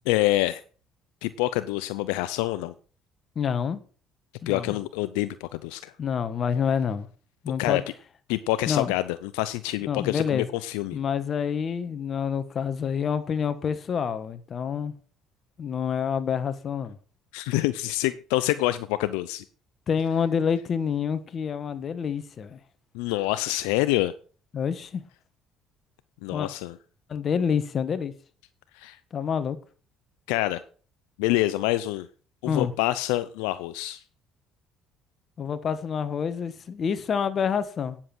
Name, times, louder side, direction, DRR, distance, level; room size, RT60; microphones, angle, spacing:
voice 1, 0.1-0.6 1.2-2.7 4.5-5.9 7.6-7.8 8.3-11.0 17.3-19.4 22.9-24.1 26.2-26.8 28.7-29.0 30.3-30.6 31.2-32.1 32.4-34.0, left 17 dB, 85° left, 0.5 m, -26 dB
voice 2, 3.3-3.8 4.4-4.8 6.0-7.1 7.4-7.8 8.7-8.9 9.9-10.5 10.9-14.9 15.6-17.0 19.9-22.6 24.5-25.0 26.3-26.5 27.1-28.1 29.1-29.6 32.4-32.7 35.4-38.0, left 7 dB, 50° left, 1.4 m, -27 dB
9.8 x 7.4 x 6.1 m
supercardioid pair, 75°, 0 cm